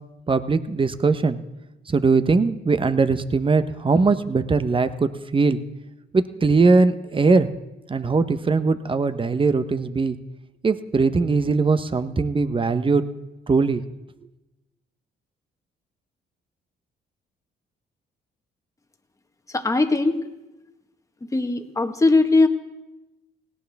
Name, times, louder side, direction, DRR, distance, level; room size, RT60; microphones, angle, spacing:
voice 1, 0.3-1.4 1.9-5.6 6.1-7.5 7.9-10.2 10.6-13.1 13.5-13.8, right 4 dB, 25° right, 11 dB, 0.9 m, -20 dB
voice 2, 19.5-20.2 21.3-22.5, left 3 dB, 15° left, 6 dB, 1.4 m, -19 dB
18.5 x 17.0 x 3.5 m, 1.0 s
cardioid pair, 90°, 20 cm